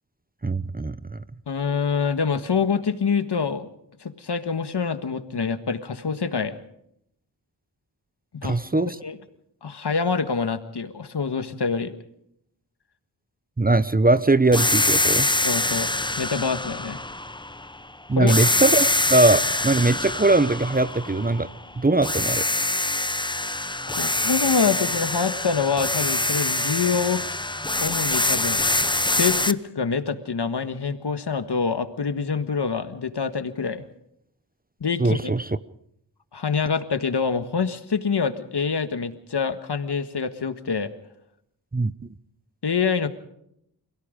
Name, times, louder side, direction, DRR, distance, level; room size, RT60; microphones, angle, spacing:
voice 1, 0.4-1.2 8.4-9.0 13.6-15.3 18.1-21.5 21.8-22.5 35.0-35.5 41.7-41.9, right 2 dB, 20° right, 15 dB, 0.8 m, -21 dB
voice 2, 1.5-3.7 4.0-6.6 8.4-8.6 9.0-9.2 9.6-12.0 15.4-15.9 16.2-17.0 18.1-18.4 23.9-27.4 27.8-28.8 29.1-33.8 34.8-35.3 36.3-40.9 42.6-43.1, left 5 dB, 70° left, 10 dB, 1.6 m, -26 dB
sound 1, 14.5-17.8 18.3-21.6 22.0-29.5, left 2 dB, 10° left, 0.8 m, -24 dB
29.5 x 17.0 x 5.2 m, 0.75 s
cardioid pair, 50°, 42 cm